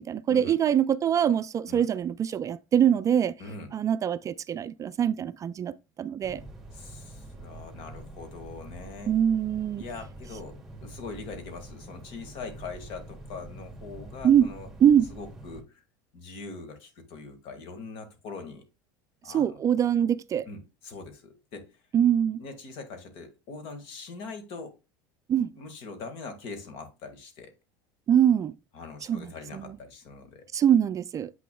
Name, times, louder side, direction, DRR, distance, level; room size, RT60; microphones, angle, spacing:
voice 1, 0.0-3.4 3.7-6.4 9.1-9.8 14.2-14.5 14.8-15.1 19.3-20.5 21.9-22.4 25.3-25.5 28.1-28.5 29.1-29.7 30.5-31.3, right 9 dB, 30° right, 0.4 m, -24 dB
voice 2, 3.4-3.7 6.7-9.1 9.8-14.7 15.1-15.8 16.1-18.6 19.2-19.6 20.5-21.8 22.4-24.8 25.6-27.5 28.7-30.4, left 4 dB, 60° left, 1.8 m, -42 dB
sound 1, 6.2-15.6, right 2 dB, ahead, 2.2 m, -45 dB
7.8 x 6.0 x 2.3 m
supercardioid pair, 105°, 11 cm